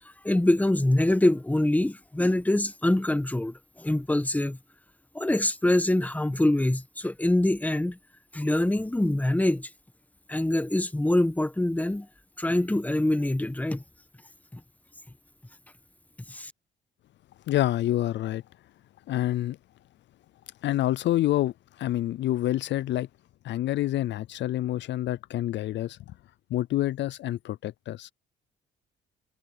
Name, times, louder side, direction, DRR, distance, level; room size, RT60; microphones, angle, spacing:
voice 1, 0.2-4.6 5.1-8.0 8.3-9.7 10.3-12.1 12.4-13.8 14.5-14.6 16.3-16.5, left 1 dB, 10° left, 1.3 m, -24 dB
voice 2, 17.5-18.4 19.1-19.6 20.6-23.1 23.4-26.0 26.5-28.1, left 14 dB, 65° left, 0.4 m, -27 dB
cardioid pair, 90°, 20 cm